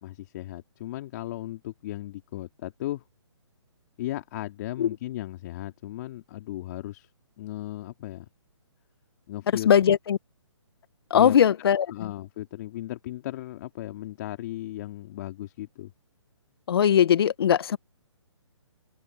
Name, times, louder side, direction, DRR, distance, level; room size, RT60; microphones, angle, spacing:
voice 1, 0.0-3.0 4.0-7.1 7.4-8.2 9.3-9.7 11.1-11.4 11.9-15.9, left 14 dB, 35° left, 3.2 m, -36 dB
voice 2, 9.6-10.2 11.1-12.1 16.7-17.8, left 9 dB, 55° left, 1.5 m, -20 dB
hypercardioid pair, 150°, 16 cm